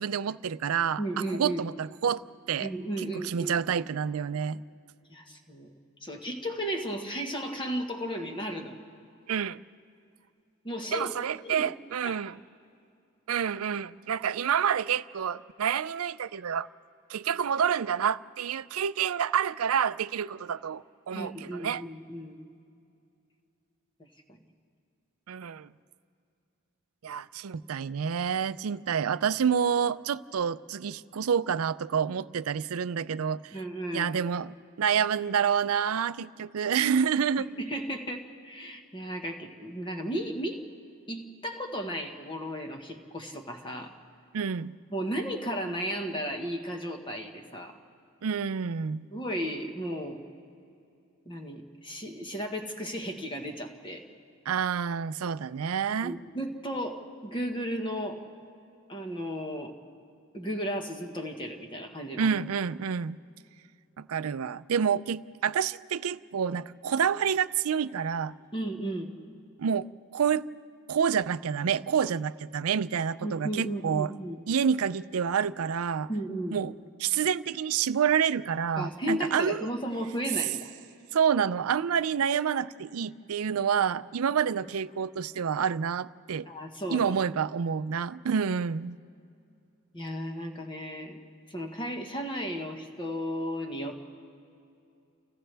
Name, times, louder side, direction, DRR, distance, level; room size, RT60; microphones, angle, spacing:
voice 1, 0.0-1.0 1.4-2.2 2.5-2.7 3.2-4.6 9.3-9.6 10.9-12.4 13.3-16.7 17.1-21.8 25.3-25.7 27.0-33.6 33.9-37.5 44.3-44.7 48.2-49.1 54.5-56.2 62.2-63.2 64.0-68.3 69.6-69.9 70.1-70.5 70.9-74.1 74.5-76.1 76.5-76.7 77.0-79.7 81.1-86.5 86.9-89.0, right 7 dB, 85° right, 16 dB, 0.4 m, -28 dB
voice 2, 1.0-1.6 2.6-3.6 5.1-5.7 6.0-8.8 10.6-11.1 11.4-11.7 12.0-12.2 21.1-22.4 24.0-24.1 33.5-34.1 37.6-40.6 41.1-44.0 44.9-47.8 49.1-50.2 51.2-54.0 56.0-58.2 58.9-59.7 60.3-62.3 68.5-69.1 73.2-74.4 76.1-76.6 78.8-80.7 86.5-87.1 89.9-91.2 91.5-94.0, equal, 25° left, 3 dB, 1.4 m, -34 dB
30.0 x 27.5 x 3.4 m, 2.6 s
head